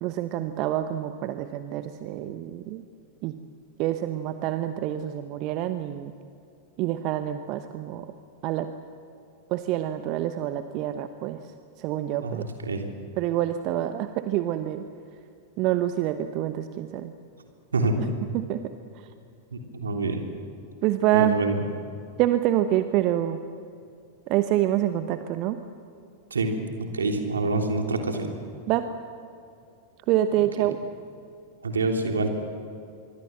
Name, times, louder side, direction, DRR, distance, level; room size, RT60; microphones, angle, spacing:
voice 1, 0.0-2.8 3.2-3.4 3.8-6.1 6.8-8.1 8.4-8.7 9.5-11.4 11.8-12.5 13.2-14.8 15.6-17.1 18.3-18.7 20.8-21.4 22.2-23.4 24.3-25.6 28.7-28.9 30.1-30.8, right 13 dB, 40° right, 10 dB, 1.0 m, -26 dB
voice 2, 12.2-12.8 17.7-17.9 19.5-20.2 21.1-21.6 26.3-26.5 26.8-28.3 31.6-32.3, right 3 dB, 70° right, 3 dB, 3.2 m, -26 dB
25.0 x 24.0 x 7.7 m, 2.5 s
figure-of-eight pair, 90°, 0 cm